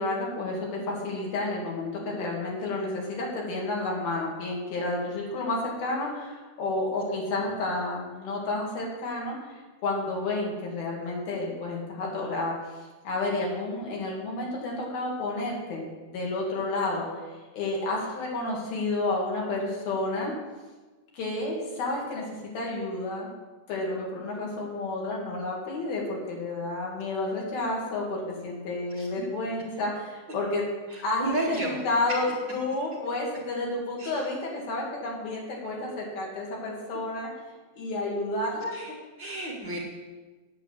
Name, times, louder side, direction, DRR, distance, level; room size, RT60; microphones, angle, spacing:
voice 1, 0.0-15.9 16.1-17.2 17.5-20.3 21.1-22.2 22.5-23.3 23.7-30.6 31.0-32.3 32.5-37.3 37.8-38.7, left 2 dB, 80° left, -2 dB, 4.5 m, -31 dB
voice 2, 30.9-31.8 34.0-34.1 38.7-38.9 39.2-39.8, right 2 dB, 40° right, -4 dB, 2.0 m, -32 dB
9.1 x 7.9 x 8.7 m, 1.3 s
omnidirectional pair, 4.2 m